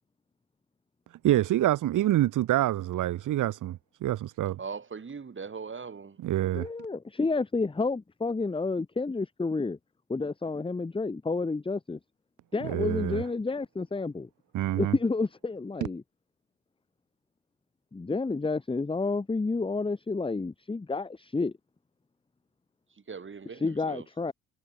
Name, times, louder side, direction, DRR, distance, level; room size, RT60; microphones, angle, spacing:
voice 1, 1.2-4.6 6.2-6.7 12.6-13.2 14.5-14.9, right 14 dB, 55° right, 0.9 m, -26 dB
voice 2, 4.6-6.2 23.1-24.0, right 5 dB, 30° right, 2.6 m, -40 dB
voice 3, 6.5-9.8 10.1-12.0 12.5-14.3 14.7-16.0 17.9-21.5 23.5-24.3, left 3 dB, 15° left, 1.0 m, -30 dB
hypercardioid pair, 55°, 38 cm